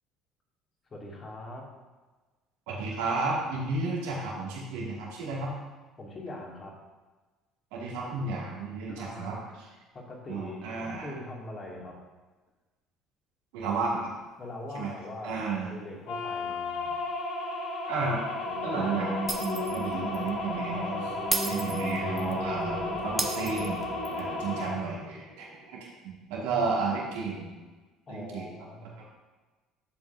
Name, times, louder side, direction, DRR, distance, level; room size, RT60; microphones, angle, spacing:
voice 1, 0.9-1.7 6.0-6.8 8.9-9.4 9.9-12.0 14.4-17.0 24.5-24.7 28.1-29.1, left 2 dB, 35° left, -2 dB, 2.3 m, -42 dB
voice 2, 2.7-5.5 7.7-9.4 10.3-11.2 13.5-14.1 14.7-14.9 15.2-15.7 17.9-18.2 18.6-21.1 21.4-23.8 24.2-27.5 28.1-28.5, right 4 dB, 70° right, -4 dB, 2.2 m, -32 dB
sound 1, 16.1-24.7, left 2 dB, 60° left, 1.7 m, -34 dB
sound 2, 18.3-25.7, equal, 90° left, 2.3 m, -37 dB
Shatter, 19.3-19.8 20.1-20.3 21.3-22.3 23.2-24.2, right 2 dB, 20° right, 0.9 m, -32 dB
11.0 x 7.3 x 2.7 m, 1.3 s
hypercardioid pair, 60°, 0 cm